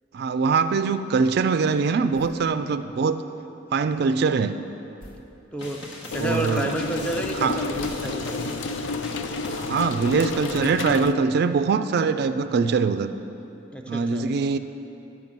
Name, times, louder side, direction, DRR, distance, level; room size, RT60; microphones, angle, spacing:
voice 1, 0.1-3.2 3.7-4.6 6.2-6.7 7.4-7.7 9.6-13.1 13.9-14.6, right 5 dB, 60° right, 11 dB, 0.3 m, -23 dB
sound 1, 2.1-2.5 5.0-5.3 7.7-8.5, equal, 50° left, 1.3 m, -45 dB
sound 2, 5.6-10.5, left 2 dB, 70° left, 1.5 m, -41 dB
sound 3, 6.1-11.1, left 3 dB, 90° left, 0.4 m, -30 dB
voice 2, 6.1-8.6 13.7-14.3, right 1 dB, 5° left, 3 dB, 0.6 m, -30 dB
10.5 x 5.9 x 7.3 m, 2.9 s
head